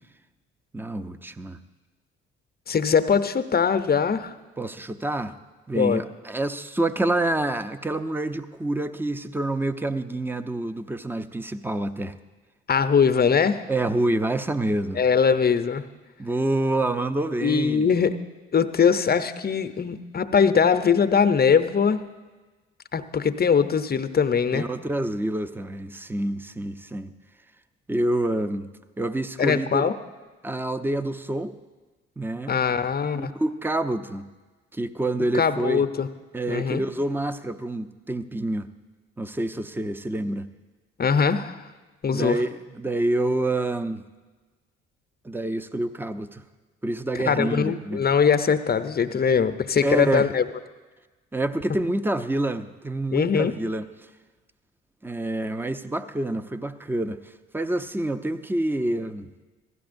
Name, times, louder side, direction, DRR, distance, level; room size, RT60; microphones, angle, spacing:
voice 1, 0.7-1.6 4.6-5.3 5.7-12.1 13.7-15.0 16.2-17.9 24.5-27.1 27.9-28.7 29.0-29.9 30.4-31.5 32.2-32.6 33.1-34.3 34.7-35.8 36.3-38.7 39.2-40.5 42.1-44.0 45.2-46.4 46.8-48.0 49.8-50.3 51.3-53.8 55.0-57.2 57.5-59.3, right 1 dB, 5° right, 11 dB, 0.6 m, -27 dB
voice 2, 2.7-4.3 5.8-6.0 12.7-13.6 14.9-15.8 17.4-18.2 18.5-22.0 22.9-24.7 29.4-29.9 32.5-33.3 35.3-36.1 36.5-36.8 41.0-41.6 42.0-42.4 47.2-50.4 53.1-53.5, left 6 dB, 30° left, 10 dB, 0.7 m, -21 dB
16.0 x 12.5 x 2.6 m, 1.3 s
hypercardioid pair, 45°, 32 cm